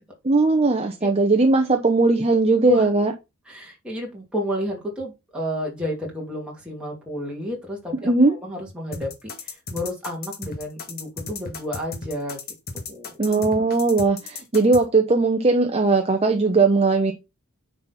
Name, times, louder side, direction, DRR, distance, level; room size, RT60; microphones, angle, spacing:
voice 1, 0.3-3.1 8.0-8.4 13.2-17.1, right 3 dB, 30° right, 0.8 m, -19 dB
voice 2, 3.5-12.4 12.7-13.1, left 1 dB, 5° right, 2.4 m, -30 dB
sound 1, 8.9-14.8, left 4 dB, 45° left, 1.5 m, -34 dB
9.3 x 4.2 x 4.2 m
head